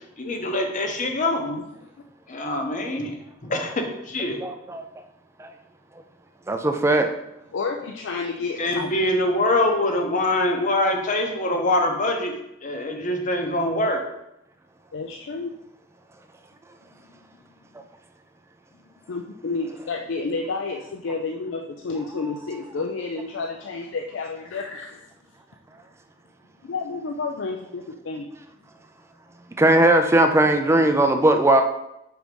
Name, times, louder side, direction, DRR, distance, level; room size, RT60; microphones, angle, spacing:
voice 1, 0.2-1.4 2.3-3.1 3.5-4.4 8.6-12.3 12.6-14.0, left 1 dB, 40° left, 4 dB, 0.8 m, -24 dB
voice 2, 4.4-4.8 5.4-5.5 6.5-7.1 29.6-31.6, right 1 dB, 15° right, 6 dB, 0.3 m, -18 dB
voice 3, 7.5-8.9 14.9-15.5 19.1-25.1 26.6-28.3, left 4 dB, 65° left, 3 dB, 0.4 m, -30 dB
4.7 x 3.9 x 5.1 m, 0.84 s
head